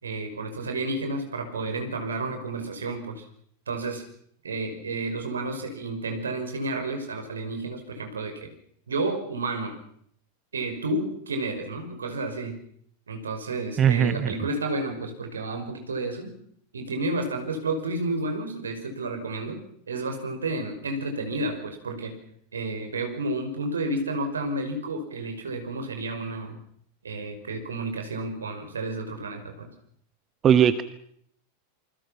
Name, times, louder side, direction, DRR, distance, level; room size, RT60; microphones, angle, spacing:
voice 1, 0.0-3.2 3.7-4.0 4.4-8.5 8.9-9.8 10.5-12.6 13.1-16.3 16.7-19.6 19.9-22.2 22.5-26.6 27.0-29.7, right 2 dB, 70° right, 6 dB, 5.7 m, -31 dB
voice 2, 13.8-14.3 30.4-30.8, right 9 dB, 25° right, 13 dB, 1.2 m, -19 dB
27.5 x 25.5 x 5.9 m, 0.66 s
figure-of-eight pair, 90°, 0 cm